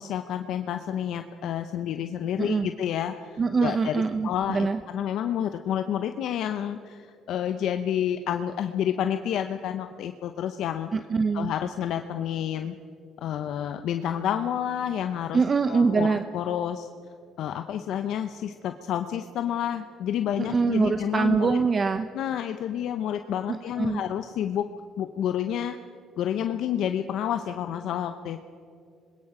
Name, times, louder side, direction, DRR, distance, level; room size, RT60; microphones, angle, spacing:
voice 1, 0.0-4.7 4.9-10.9 11.3-12.7 13.2-15.4 15.7-16.9 17.4-21.6 22.1-24.6 25.0-25.8 26.2-28.4, left 9 dB, 75° left, 8 dB, 0.7 m, -29 dB
voice 2, 2.4-2.7 3.4-4.8 10.9-11.5 15.3-16.3 20.4-22.1 23.5-24.0, right 4 dB, 35° right, 10 dB, 0.7 m, -24 dB
26.5 x 21.0 x 5.0 m, 2.5 s
cardioid pair, 95°, 0 cm